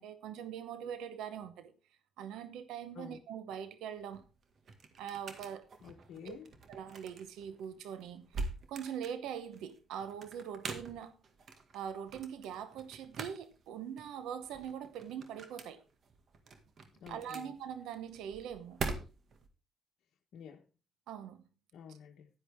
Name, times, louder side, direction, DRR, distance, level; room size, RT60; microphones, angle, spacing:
voice 1, 0.0-1.7 2.2-4.2 5.0-5.7 6.2-6.4 6.7-8.4 8.7-11.2 11.7-15.8 17.1-18.8 21.1-21.4, right 8 dB, 90° right, 0.9 m, -42 dB
sound 1, 4.0-19.5, right 3 dB, 55° right, 1.9 m, -45 dB
voice 2, 5.8-6.5 16.9-17.5 20.3-20.7 21.7-22.3, left 7 dB, 70° left, 1.1 m, -50 dB
10.5 x 10.5 x 3.5 m
cardioid pair, 90°, 0 cm